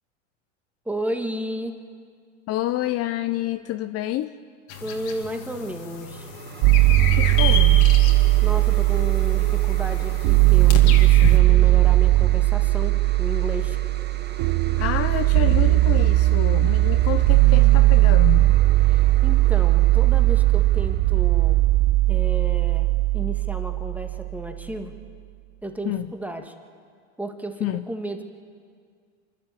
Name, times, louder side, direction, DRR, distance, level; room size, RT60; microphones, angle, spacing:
voice 1, 0.9-1.8 4.8-6.3 8.4-13.8 18.9-21.6 22.1-24.9 25.6-26.5 27.2-28.2, equal, 5° right, 5 dB, 1.8 m, -33 dB
voice 2, 2.5-4.3 7.1-7.9 14.8-18.6 25.8-26.1 27.6-27.9, left 14 dB, 40° left, 11 dB, 0.7 m, -28 dB
sound 1, 4.7-11.4, left 6 dB, 60° left, 2.7 m, -32 dB
sound 2, 5.4-21.8, right 6 dB, 30° right, 1.4 m, -41 dB
sound 3, 6.6-24.6, right 18 dB, 50° right, 0.5 m, -18 dB
27.0 x 11.5 x 8.4 m, 2.1 s
hypercardioid pair, 105°, 36 cm